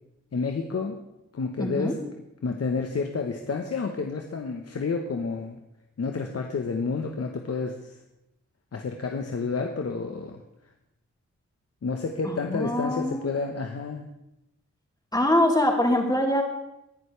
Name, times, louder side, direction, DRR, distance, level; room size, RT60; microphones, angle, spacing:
voice 1, 0.3-1.0 1.3-1.9 2.4-5.6 6.0-8.0 8.7-10.4 11.8-14.1, left 4 dB, 55° left, 3 dB, 1.3 m, -30 dB
voice 2, 1.6-1.9 12.2-13.3 15.1-16.4, left 1 dB, 15° left, -2 dB, 4.1 m, -24 dB
20.0 x 11.0 x 3.5 m, 0.87 s
cardioid pair, 50°, 29 cm